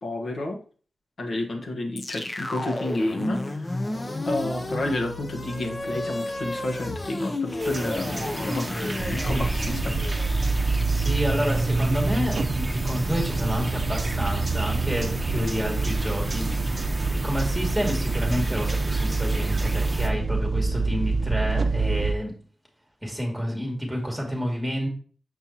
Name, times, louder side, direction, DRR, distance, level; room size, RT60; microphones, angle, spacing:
voice 1, 0.0-0.6 1.2-3.8 4.3-10.1, left 1 dB, 65° left, 2 dB, 1.3 m, -31 dB
sound 1, 2.0-12.2, left 2 dB, 25° left, 0.7 m, -32 dB
sound 2, 7.6-20.1, right 1 dB, 20° right, 1.0 m, -35 dB
sound 3, 9.0-22.1, right 3 dB, 50° right, 0.6 m, -26 dB
voice 2, 10.9-16.5 17.1-22.3 23.0-24.9, equal, ahead, -1 dB, 2.4 m, -29 dB
6.8 x 5.6 x 2.9 m, 0.42 s
wide cardioid pair, 130°, 0 cm